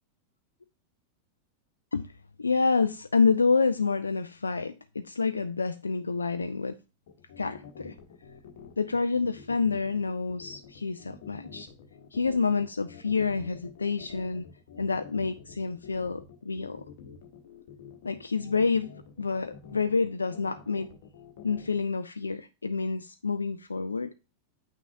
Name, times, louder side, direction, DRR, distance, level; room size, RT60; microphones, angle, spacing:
voice 1, 2.4-6.8 7.4-7.9 8.8-11.7 12.1-14.4 14.8-16.8 18.0-18.9 19.2-20.9 21.4-24.1, left 4 dB, 75° left, 0.3 m, -28 dB
sound 1, 7.1-21.8, left 7 dB, 55° left, 1.1 m, -48 dB
8.5 x 5.9 x 2.6 m
figure-of-eight pair, 90°, 0 cm